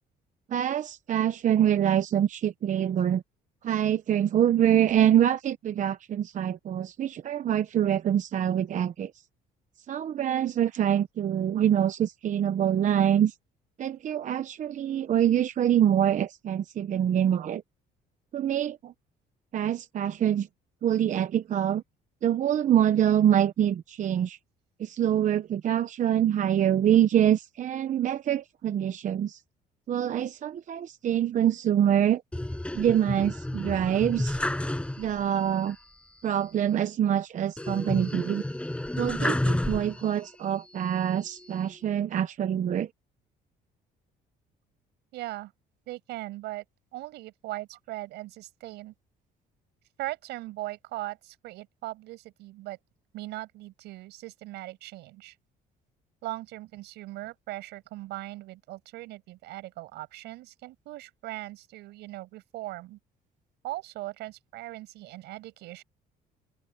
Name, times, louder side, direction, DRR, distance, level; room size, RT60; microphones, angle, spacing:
voice 1, 0.5-3.2 3.6-9.1 9.9-13.3 13.8-17.6 18.3-18.9 19.5-20.5 20.8-21.8 22.2-24.4 24.8-29.4 29.9-32.2 32.7-34.4 35.0-35.8 36.2-38.4 39.0-42.9, right 10 dB, 50° right, 0.9 m, -25 dB
sound 1, 32.3-35.4 35.7-35.8 37.6-40.3 40.8-41.7, left 1 dB, 5° left, 6.3 m, -31 dB
voice 2, 45.1-45.5 45.9-46.6 46.9-48.9 50.0-52.8 53.1-55.4 56.2-63.0 63.6-65.8, right 17 dB, 85° right, 7.2 m, -39 dB
open air
cardioid pair, 110°, 17 cm